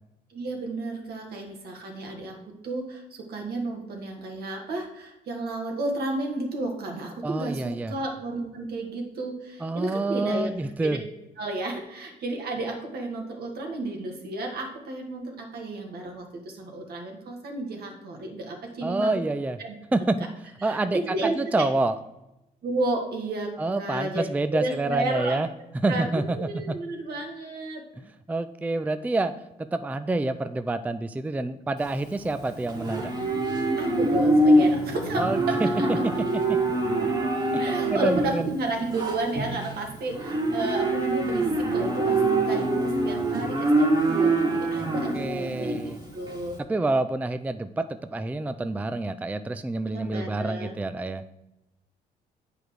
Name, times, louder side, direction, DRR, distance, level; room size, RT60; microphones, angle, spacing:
voice 1, 0.3-10.5 10.8-11.0 11.4-19.1 19.6-19.7 20.6-21.7 22.6-25.4 25.9-27.8 33.8-35.3 35.8-36.0 37.6-46.6 49.9-50.7, right 2 dB, 70° right, 2 dB, 2.0 m, -32 dB
voice 2, 7.2-7.9 9.6-11.0 18.8-19.6 19.9-20.3 20.6-22.0 23.6-25.5 25.8-26.8 28.3-29.3 29.6-33.1 35.2-35.7 36.0-36.6 37.5-38.5 44.8-46.0 46.6-51.2, right 2 dB, 10° right, 11 dB, 0.4 m, -28 dB
Livestock farm animals working animals, 31.8-46.5, right 2 dB, 25° right, 1.8 m, -25 dB
8.4 x 4.9 x 4.6 m, 0.92 s
cardioid pair, 95°, 17 cm